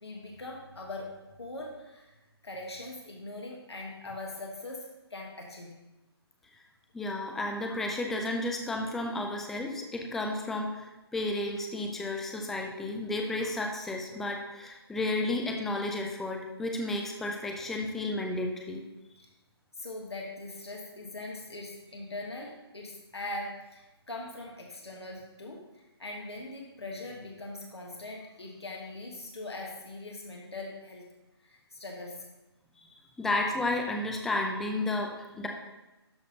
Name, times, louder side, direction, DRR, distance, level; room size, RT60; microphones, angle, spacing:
voice 1, 0.0-2.1 2.4-5.7 19.2-19.3 19.8-31.0 31.4-32.2, left 2 dB, 75° left, -1 dB, 1.4 m, -41 dB
voice 2, 6.9-18.8 33.2-35.5, left 2 dB, ahead, 2 dB, 0.3 m, -32 dB
12.0 x 4.2 x 4.0 m, 1.0 s
figure-of-eight pair, 140°, 14 cm